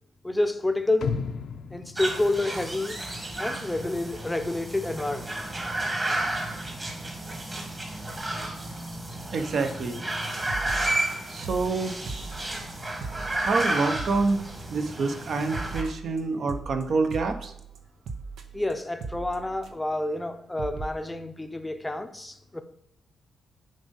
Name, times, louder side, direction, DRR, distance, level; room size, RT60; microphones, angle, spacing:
voice 1, 0.2-1.1 1.7-3.0 3.4-5.3 18.5-22.6, left 2 dB, 10° left, 0.7 m, -29 dB
sound 1, 1.0-3.2 3.5-3.6, left 6 dB, 70° left, 0.6 m, -34 dB
sound 2, 2.0-15.8, right 1 dB, 25° right, 1.6 m, -32 dB
voice 2, 9.3-10.0 11.3-12.0 13.3-14.4 14.7-17.5, right 3 dB, 55° right, 1.0 m, -27 dB
sound 3, 10.2-10.3 10.5-11.1 11.4-14.9 15.2-20.0 20.3-20.4 20.6-20.9, right 4 dB, 80° right, 0.8 m, -39 dB
7.5 x 5.3 x 5.4 m
cardioid pair, 135°, 0 cm